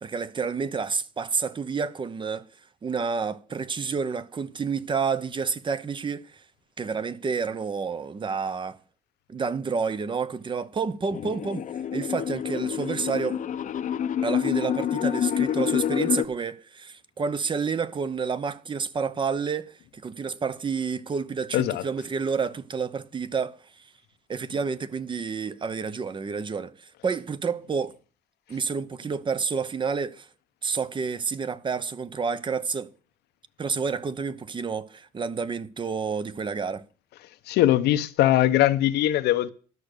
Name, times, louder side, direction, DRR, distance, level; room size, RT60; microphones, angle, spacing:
voice 1, 0.0-2.4 2.8-6.4 6.8-8.8 9.3-11.7 11.9-13.4 14.2-23.9 24.3-28.0 28.5-30.3 30.6-32.9 33.6-36.8, right 5 dB, 30° right, 0.9 m, -29 dB
sound 1, 11.1-16.3, left 9 dB, 50° left, 0.8 m, -27 dB
voice 2, 21.5-21.9 37.5-39.5, left 13 dB, 80° left, 0.9 m, -21 dB
12.0 x 6.2 x 6.7 m
cardioid pair, 110°, 17 cm